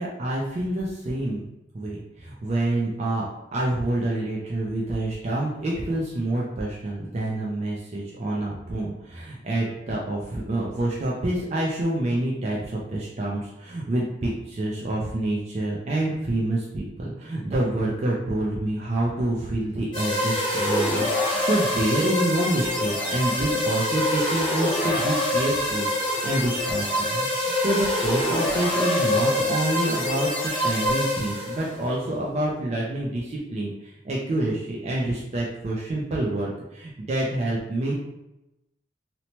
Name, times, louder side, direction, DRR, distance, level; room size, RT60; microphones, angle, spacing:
voice 1, 0.0-1.5 1.7-3.2 3.5-37.9, right 1 dB, 35° right, -4 dB, 0.3 m, -27 dB
sound 1, 19.9-31.7, left 1 dB, 25° left, 0.7 m, -25 dB
2.8 x 2.1 x 2.8 m, 0.91 s
head